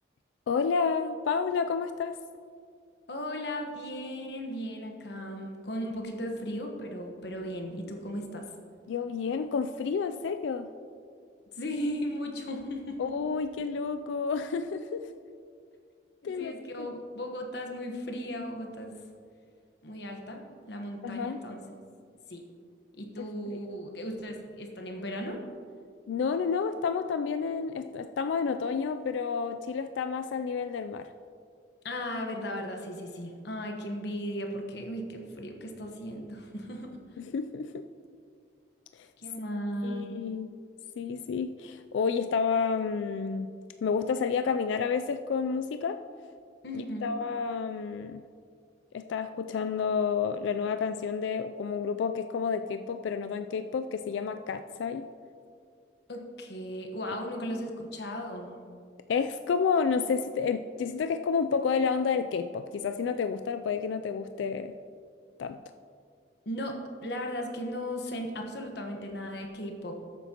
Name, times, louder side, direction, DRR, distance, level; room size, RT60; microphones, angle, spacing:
voice 1, 0.5-2.2 8.9-10.7 13.0-15.1 16.2-17.0 21.0-21.4 23.2-23.8 26.1-31.1 37.2-37.8 39.0-39.1 39.8-40.6 41.0-46.0 46.7-48.2 48.9-55.1 59.1-64.7 65.4-65.6, left 5 dB, 80° left, 9 dB, 0.3 m, -30 dB
voice 2, 3.1-8.4 11.6-13.2 16.2-19.0 19.8-21.7 22.3-22.4 23.0-25.4 31.8-37.0 39.2-40.0 46.6-47.1 56.1-58.6 66.4-70.0, equal, 65° left, 2 dB, 1.2 m, -36 dB
14.0 x 8.3 x 2.9 m, 2.3 s
head